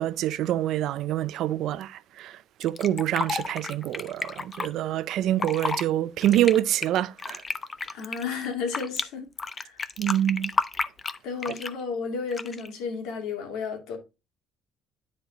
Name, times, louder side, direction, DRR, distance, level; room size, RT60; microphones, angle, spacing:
voice 1, 0.0-7.4 10.0-10.5 11.5-11.6, right 12 dB, 55° right, 0.4 m, -26 dB
Fill (with liquid), 2.6-4.7 5.3-5.8 6.2-9.0 9.4-11.8 12.3-12.7, left 4 dB, 20° left, 0.4 m, -31 dB
voice 2, 7.9-9.3 9.6-9.8 11.2-14.0, left 5 dB, 80° left, 2.4 m, -32 dB
9.8 x 4.2 x 3.8 m
cardioid pair, 160°, 0 cm